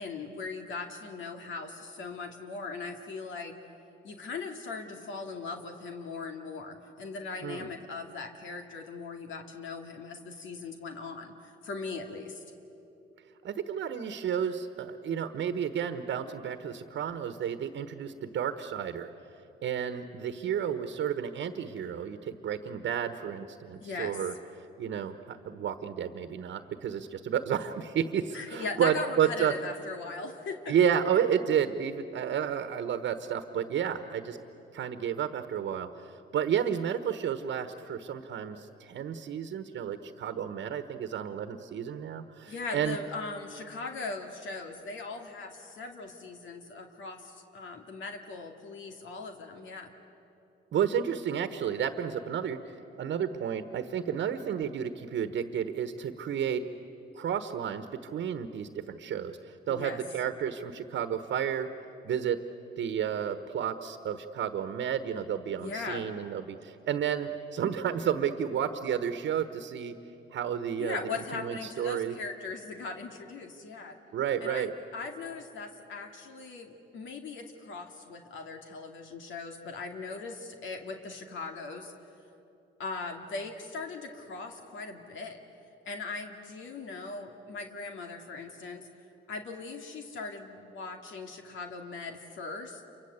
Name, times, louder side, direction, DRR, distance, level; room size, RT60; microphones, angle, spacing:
voice 1, 0.0-3.5 4.0-12.4 23.8-24.2 28.3-30.7 42.5-49.9 59.7-60.0 65.6-66.2 70.8-74.0 74.4-81.9 82.8-85.4 85.9-88.9 89.3-92.8, left 4 dB, 75° left, 4 dB, 2.4 m, -39 dB
voice 2, 13.4-19.1 19.6-24.3 24.8-29.5 30.7-34.4 34.7-43.0 50.7-52.6 53.0-56.6 57.1-61.7 62.0-62.4 62.8-69.9 70.3-71.0 71.3-72.2 74.1-74.7, right 8 dB, 70° right, 9 dB, 1.3 m, -31 dB
28.0 x 24.5 x 8.2 m, 2.8 s
cardioid pair, 90°, 20 cm